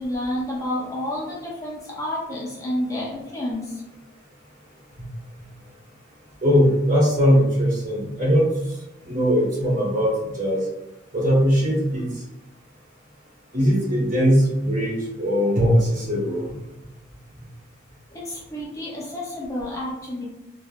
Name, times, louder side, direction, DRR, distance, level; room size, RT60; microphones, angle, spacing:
voice 1, 0.0-3.8 18.1-20.3, left 1 dB, 15° left, -4 dB, 0.4 m, -30 dB
voice 2, 6.4-8.4 9.1-10.1 10.4-10.6 11.1-12.0 13.5-16.4, equal, 45° right, -5 dB, 1.1 m, -20 dB
3.6 x 2.0 x 2.3 m, 0.90 s
head